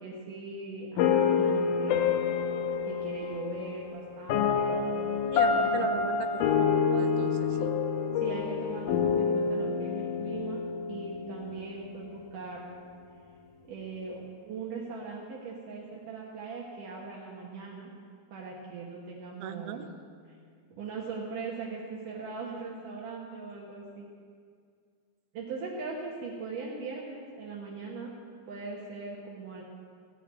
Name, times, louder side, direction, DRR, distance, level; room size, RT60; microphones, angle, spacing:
voice 1, 0.0-2.1 2.8-4.8 5.4-5.9 8.2-10.6 10.9-12.7 13.6-17.9 18.3-19.8 20.7-24.1 25.3-28.1 28.5-29.6, right 4 dB, 65° right, -3 dB, 2.7 m, -40 dB
sound 1, 1.0-12.1, left 6 dB, 75° left, 2.0 m, -28 dB
voice 2, 5.2-7.8 19.4-19.8, right 9 dB, 85° right, 8 dB, 2.8 m, -38 dB
17.5 x 6.7 x 8.8 m, 2.2 s
omnidirectional pair, 4.4 m